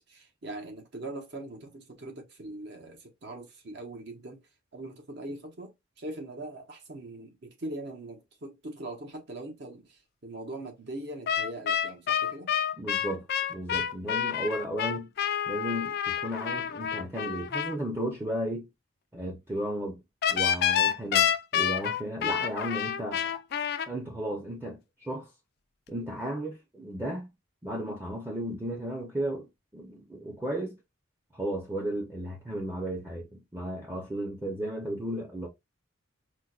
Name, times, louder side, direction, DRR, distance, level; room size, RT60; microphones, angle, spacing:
voice 1, 0.0-4.4 4.7-12.5, right 1 dB, 55° right, 0.8 m, -41 dB
sound 1, 11.3-17.7 20.2-23.9, left 9 dB, 50° left, 0.3 m, -28 dB
voice 2, 12.8-15.1 15.5-18.7 19.1-20.0 20.3-23.4 23.9-25.3 25.9-27.3 27.6-30.8 31.3-35.5, right 1 dB, 10° right, 0.6 m, -34 dB
4.5 x 2.1 x 2.3 m
head